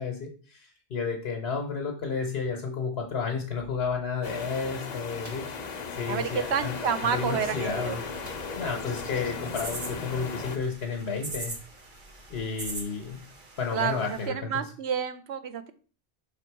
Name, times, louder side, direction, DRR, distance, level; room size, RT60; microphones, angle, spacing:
voice 1, 0.0-5.5 6.0-6.8 7.0-8.0 8.6-11.5 12.3-13.2 13.6-14.6, left 5 dB, 75° left, 2 dB, 1.1 m, -32 dB
sound 1, 4.2-10.6, left 5 dB, 45° left, 0.7 m, -36 dB
sound 2, 5.2-5.6 8.2-8.8 9.2-9.3 9.7-9.9, right 1 dB, 15° right, 1.1 m, -51 dB
sound 3, 6.0-14.3, right 3 dB, 50° right, 1.2 m, -43 dB
voice 2, 6.1-8.0 13.7-15.7, right 7 dB, 85° right, 11 dB, 0.9 m, -29 dB
5.8 x 3.6 x 4.5 m, 0.39 s
omnidirectional pair, 1.1 m